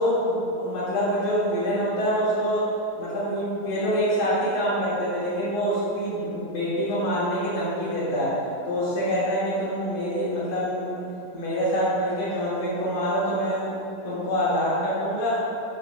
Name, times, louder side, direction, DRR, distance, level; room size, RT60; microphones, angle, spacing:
voice 1, 0.0-2.7 3.0-8.4 8.7-11.0 11.3-15.4, equal, 85° left, -10 dB, 5.0 m, -25 dB
13.0 x 5.7 x 7.6 m, 2.9 s
omnidirectional pair, 3.8 m